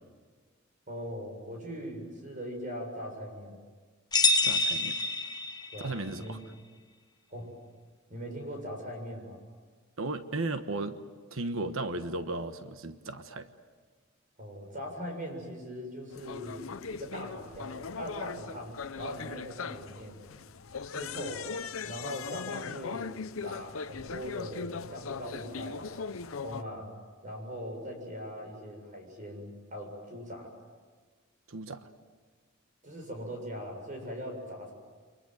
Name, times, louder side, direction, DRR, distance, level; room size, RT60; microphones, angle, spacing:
voice 1, 0.9-3.6 5.7-6.4 7.3-7.5 8.1-9.4 14.4-20.2 20.9-21.5 21.8-23.1 23.4-26.0 26.3-26.9 27.2-30.6 32.8-34.7, equal, 40° right, 3 dB, 7.2 m, -40 dB
sound 1, 4.1-5.9, left 3 dB, 20° left, 1.1 m, -27 dB
voice 2, 4.4-5.0 5.8-6.4 10.0-11.0 11.3-13.5 31.5-31.9, right 2 dB, 75° right, 9 dB, 1.3 m, -35 dB
sound 2, 16.1-26.6, left 5 dB, 80° left, 0.7 m, -39 dB
29.5 x 24.5 x 8.0 m, 1.5 s
head